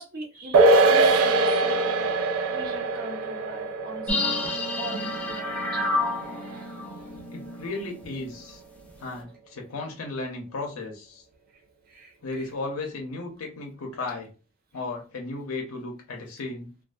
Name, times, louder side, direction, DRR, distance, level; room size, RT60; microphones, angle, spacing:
voice 1, 0.0-2.2 2.5-7.2 11.5-11.6 11.9-12.5, right 1 dB, 45° right, 1 dB, 0.7 m, -41 dB
sound 1, 0.5-7.2 7.5-7.6, right 3 dB, 85° right, 0.4 m, -23 dB
sound 2, 4.1-8.5 8.8-8.9, left 2 dB, 5° left, 0.4 m, -30 dB
voice 2, 7.3-8.6 9.0-11.2 12.2-14.3 14.7-16.7, left 3 dB, 80° left, 1 dB, 0.5 m, -35 dB
2.4 x 2.3 x 2.3 m, 0.33 s
head